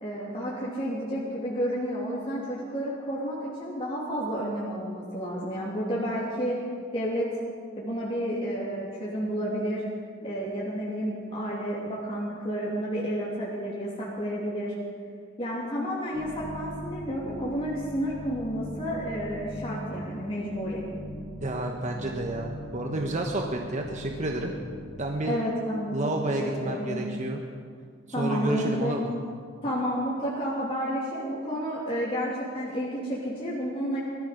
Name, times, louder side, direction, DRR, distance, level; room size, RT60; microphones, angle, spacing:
voice 1, 0.0-6.6 6.9-7.4 7.8-9.8 10.2-14.7 15.4-20.8 25.3-25.9 26.4-27.0 28.1-29.0 29.6-34.0, equal, 25° left, -6 dB, 2.8 m, -31 dB
sound 1, 16.1-25.2, equal, 5° left, 2.8 m, -40 dB
voice 2, 21.4-24.5 25.0-25.4 25.9-27.4 28.2-29.1, right 1 dB, 35° right, 1 dB, 1.1 m, -30 dB
19.5 x 14.5 x 5.1 m, 2.1 s
head